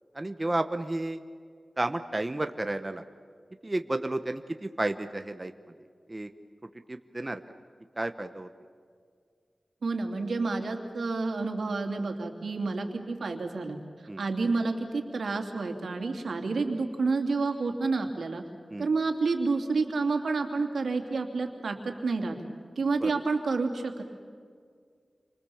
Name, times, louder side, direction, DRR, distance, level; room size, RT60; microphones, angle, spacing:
voice 1, 0.1-1.2 1.8-3.0 3.6-5.5 6.1-6.3 6.9-7.4 8.0-8.5 14.1-14.2 18.7-18.9 23.0-23.1, right 2 dB, 25° right, 7 dB, 1.0 m, -31 dB
voice 2, 9.8-13.8 14.2-18.4 18.8-22.4 22.8-24.0, right 3 dB, 85° right, 4 dB, 2.9 m, -29 dB
29.5 x 25.5 x 7.2 m, 2.1 s
wide cardioid pair, 85°, 0 cm